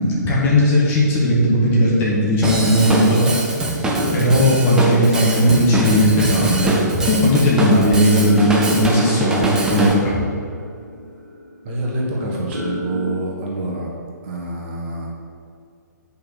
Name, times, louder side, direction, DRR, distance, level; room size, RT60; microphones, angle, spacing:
voice 1, 0.0-3.4 4.1-10.2, equal, 20° left, -5 dB, 1.8 m, -17 dB
sound 1, 1.0-3.5 3.9-13.1, equal, 85° right, 1.7 m, -33 dB
Drum kit / Drum, 2.4-9.9, right 2 dB, 5° right, 0.7 m, -23 dB
voice 2, 11.6-13.9 14.2-15.1, right 2 dB, 35° right, -3 dB, 1.5 m, -26 dB
9.0 x 5.6 x 4.2 m, 2.3 s
figure-of-eight pair, 125°, 10 cm